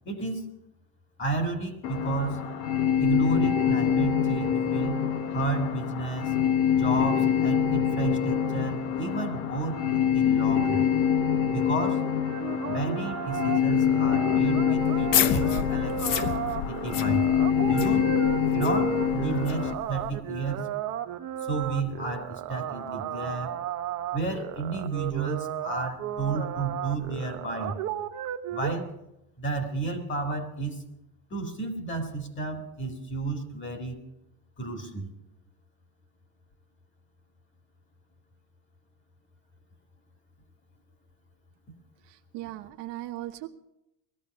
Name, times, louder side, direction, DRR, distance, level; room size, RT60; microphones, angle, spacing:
voice 1, 0.1-0.4 1.2-2.5 3.0-5.0 5.3-6.3 6.8-10.9 11.5-12.0 12.7-16.3 16.7-17.3 17.7-18.1 18.5-20.7 21.5-23.6 24.1-27.8 28.5-28.9 29.4-30.8 31.3-34.0 34.6-35.1, right 3 dB, 25° left, 5 dB, 2.0 m, -32 dB
sound 1, 1.8-19.7, left 8 dB, 80° left, 1.5 m, -25 dB
sound 2, 12.2-28.8, right 11 dB, 35° right, 0.8 m, -34 dB
sound 3, 14.8-20.2, left 9 dB, 40° left, 0.8 m, -31 dB
voice 2, 42.1-43.5, right 15 dB, 55° right, 5 dB, 1.0 m, -38 dB
18.5 x 14.0 x 5.4 m, 0.89 s
cardioid pair, 160°, 50 cm